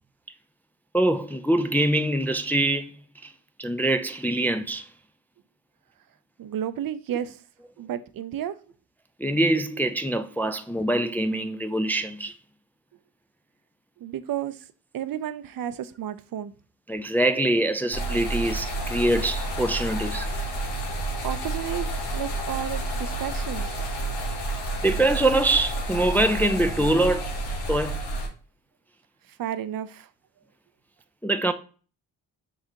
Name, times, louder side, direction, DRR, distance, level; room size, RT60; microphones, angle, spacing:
voice 1, 0.9-2.9 3.6-4.9 9.2-12.3 16.9-20.3 24.8-27.3 27.7-28.0 31.2-31.5, right 1 dB, 5° left, 0.3 m, -24 dB
voice 2, 6.4-7.4 7.8-8.5 14.0-14.6 14.9-16.5 21.2-21.9 22.1-23.6 29.4-30.1, right 10 dB, 60° right, 0.5 m, -32 dB
sound 1, 17.9-28.3, right 1 dB, 80° left, 1.0 m, -30 dB
4.9 x 3.7 x 2.6 m
cardioid pair, 55°, 40 cm